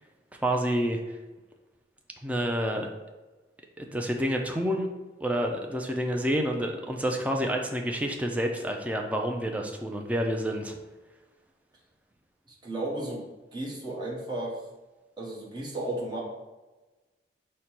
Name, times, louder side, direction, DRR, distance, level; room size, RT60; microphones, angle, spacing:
voice 1, 0.4-1.0 2.2-2.9 3.8-4.9 5.2-10.8, equal, 10° right, 2 dB, 0.4 m, -28 dB
voice 2, 12.5-13.3 13.5-14.6 15.2-16.2, right 1 dB, 25° right, -4 dB, 1.0 m, -34 dB
5.2 x 2.2 x 4.4 m, 1.2 s
head